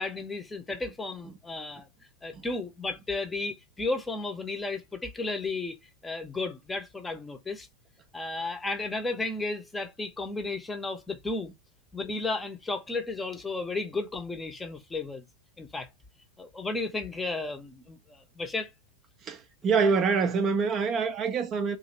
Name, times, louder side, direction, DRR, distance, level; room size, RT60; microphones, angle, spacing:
voice 1, 0.0-1.9 2.2-5.8 6.0-7.7 8.1-11.5 11.9-15.2 15.6-15.9 16.4-18.7, left 3 dB, 10° left, 0.7 m, -33 dB
voice 2, 19.2-21.8, right 5 dB, 30° right, 0.5 m, -26 dB
3.1 x 2.6 x 4.2 m
figure-of-eight pair, 90°, 0 cm